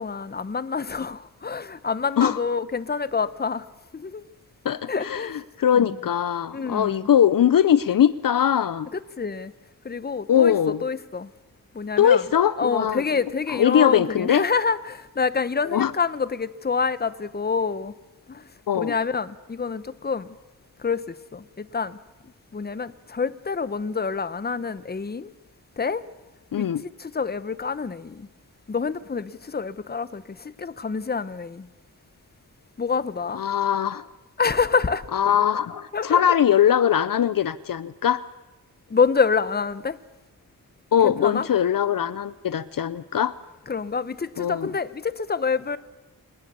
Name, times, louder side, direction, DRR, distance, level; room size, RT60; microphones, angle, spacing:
voice 1, 0.0-3.7 3.9-4.3 4.9-5.3 5.7-6.0 6.5-7.1 8.9-9.5 9.8-11.3 11.7-12.2 12.6-17.9 18.3-18.5 18.7-20.3 20.8-22.0 22.5-25.3 25.8-26.0 26.6-26.7 27.0-28.3 28.7-31.7 32.8-33.4 34.4-35.0 35.9-36.2 38.9-40.0 41.0-41.5 43.7-45.8, left 5 dB, 25° left, 0.9 m, -27 dB
voice 2, 4.6-8.9 10.3-10.8 12.0-13.2 13.5-14.4 15.7-15.9 18.7-18.9 26.5-26.8 33.3-34.0 35.1-38.2 40.9-43.3 44.4-44.7, left 9 dB, 65° left, 0.7 m, -21 dB
26.5 x 19.0 x 6.9 m
wide cardioid pair, 110°, 36 cm